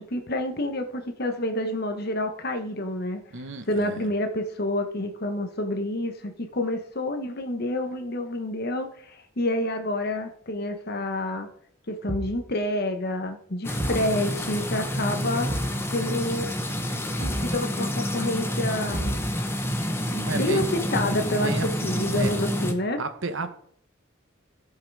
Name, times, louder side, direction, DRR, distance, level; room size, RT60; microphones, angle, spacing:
voice 1, 0.0-3.2 3.7-11.5 11.9-15.5 15.9-16.5 17.2-19.2 20.1-21.5 21.8-23.0, left 1 dB, 50° left, 1.2 m, -28 dB
voice 2, 3.3-4.1 20.2-20.8 21.4-22.4 23.0-23.6, right 3 dB, 65° right, 1.0 m, -33 dB
Thump thud, 12.1-12.5 13.8-14.1 15.5-15.8 17.2-17.6 18.9-19.5, right 1 dB, 25° right, 0.8 m, -32 dB
sound 1, 13.6-22.7, equal, 10° left, 1.0 m, -28 dB
15.5 x 5.8 x 4.8 m
head